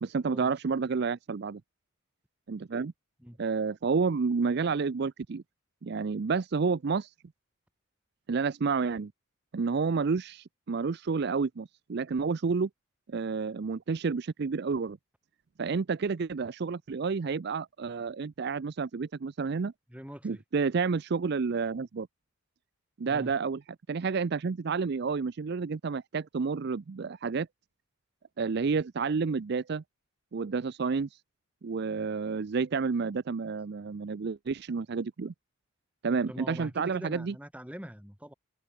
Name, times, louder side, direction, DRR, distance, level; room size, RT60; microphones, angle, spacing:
voice 1, 0.0-1.6 2.5-2.9 3.4-5.4 5.8-7.1 8.3-9.1 9.5-12.7 13.1-15.0 15.6-19.7 20.2-22.1 23.0-23.6 23.9-27.5 28.4-29.8 30.3-31.1 31.6-35.3 36.0-37.3, right 5 dB, 55° right, 0.5 m, -30 dB
voice 2, 19.9-20.4 23.0-23.3 36.3-38.3, equal, 5° right, 2.8 m, -43 dB
head